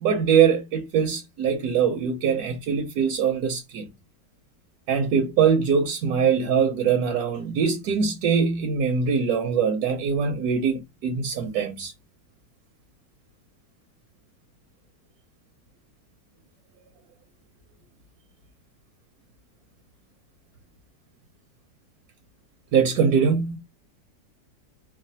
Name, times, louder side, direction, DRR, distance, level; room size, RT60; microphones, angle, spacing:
voice 1, 0.0-3.9 4.9-11.9 22.7-23.6, right 6 dB, 70° right, 1.0 m, -22 dB
3.0 x 2.3 x 2.7 m
omnidirectional pair, 1.9 m